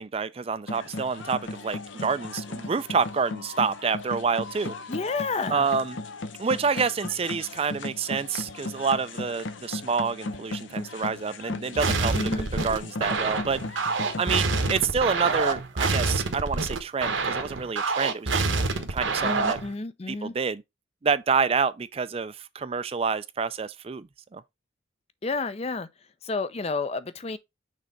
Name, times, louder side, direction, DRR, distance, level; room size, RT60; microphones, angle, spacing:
voice 1, 0.0-4.7 5.5-6.0 6.4-13.9 14.2-18.5 18.9-19.6 20.1-20.6 21.0-24.4, right 5 dB, 30° right, 0.4 m, -28 dB
sound 1, 0.7-14.8, left 2 dB, 75° left, 0.8 m, -36 dB
voice 2, 4.9-5.7 12.1-12.5 19.2-20.3 25.2-25.9 26.2-27.4, left 3 dB, 30° left, 0.5 m, -30 dB
sound 2, 11.8-19.7, right 3 dB, 75° right, 1.1 m, -27 dB
6.3 x 3.3 x 5.2 m
head